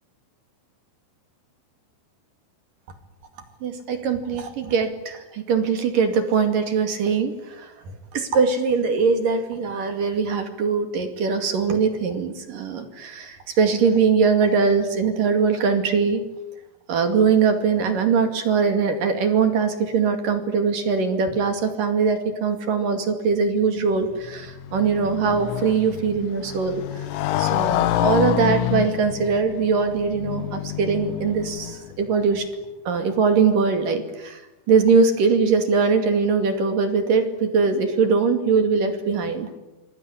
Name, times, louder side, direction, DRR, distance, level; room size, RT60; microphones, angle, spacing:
voice 1, 3.6-7.7 8.1-16.2 16.9-27.0 27.4-32.5 32.8-34.4 34.7-39.5, right 5 dB, 50° right, 7 dB, 3.4 m, -21 dB
Motorcycle, 24.0-32.1, left 13 dB, 75° left, 3.3 m, -27 dB
26.0 x 22.5 x 9.9 m, 1.0 s
omnidirectional pair, 5.9 m